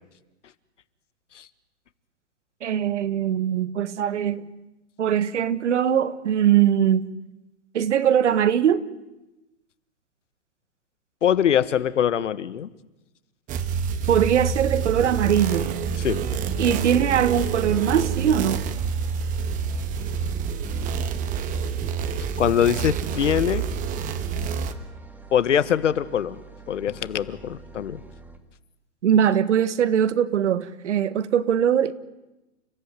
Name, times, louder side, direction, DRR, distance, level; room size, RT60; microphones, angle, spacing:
voice 1, 2.6-4.4 5.0-7.1 7.7-8.8 14.1-15.7 16.6-18.6 29.0-31.9, right 9 dB, 70° right, 1.5 m, -21 dB
voice 2, 11.2-12.7 16.0-16.3 22.4-23.6 25.3-26.4 26.7-28.0, left 9 dB, 80° left, 1.5 m, -23 dB
sound 1, 13.5-24.7, right 6 dB, 20° right, 1.5 m, -27 dB
sound 2, 16.5-28.4, right 3 dB, 5° right, 2.0 m, -46 dB
30.0 x 14.5 x 9.8 m
hypercardioid pair, 140°, 36 cm